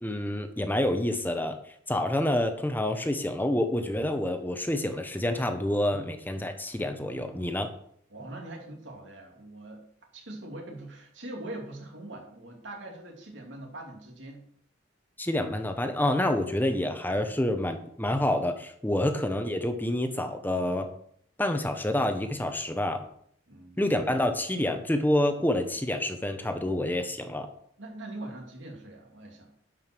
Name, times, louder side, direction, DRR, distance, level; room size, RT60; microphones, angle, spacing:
voice 1, 0.0-1.6 1.9-7.7 15.2-20.9 21.4-23.1 23.8-27.5, left 1 dB, 10° left, 7 dB, 0.9 m, -28 dB
voice 2, 8.1-9.9 10.1-14.5 18.9-19.0 23.5-23.9 27.8-29.5, right 1 dB, 70° right, 1 dB, 2.7 m, -42 dB
11.0 x 5.4 x 6.1 m, 0.67 s
head